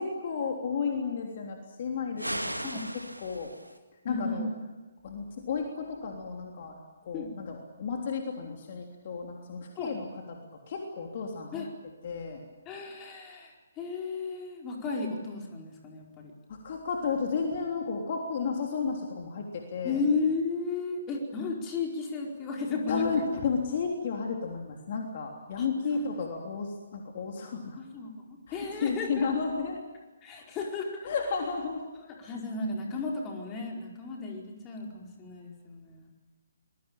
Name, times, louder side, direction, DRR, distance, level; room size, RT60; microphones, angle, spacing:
voice 1, 0.0-2.5 3.2-3.5 4.0-4.5 5.0-10.4 10.7-11.6 12.0-12.4 16.6-20.0 22.9-27.8 28.5-29.8 31.0-31.8, left 5 dB, 40° left, 1 dB, 3.3 m, -32 dB
sound 1, 2.2-3.8, right 1 dB, 85° right, 2.2 m, -36 dB
voice 2, 4.1-4.5 7.1-7.3 9.8-9.9 11.5-11.7 12.6-16.3 19.8-23.1 25.6-25.7 25.9-26.1 27.7-29.3 30.2-31.0 31.9-36.1, left 4 dB, 20° left, 0 dB, 4.6 m, -34 dB
25.5 x 21.5 x 8.9 m, 1.2 s
figure-of-eight pair, 135°, 0 cm